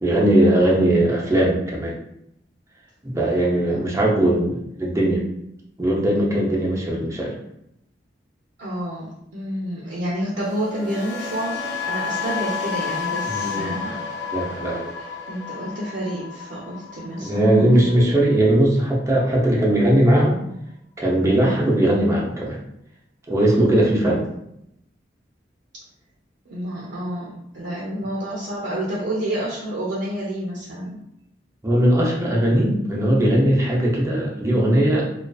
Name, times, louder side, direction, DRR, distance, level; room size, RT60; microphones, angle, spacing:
voice 1, 0.0-1.9 3.0-5.2 5.8-7.4 13.2-13.7 14.3-14.9 17.2-20.4 21.0-22.6 23.3-24.2 31.6-35.1, right 1 dB, 15° right, -3 dB, 0.5 m, -19 dB
voice 2, 8.6-14.0 15.0-18.2 26.5-31.0, right 1 dB, 90° right, -6 dB, 0.6 m, -29 dB
sound 1, 10.4-18.5 18.8-19.1, left 5 dB, 75° left, 0.5 m, -31 dB
2.4 x 2.3 x 2.3 m, 0.79 s
head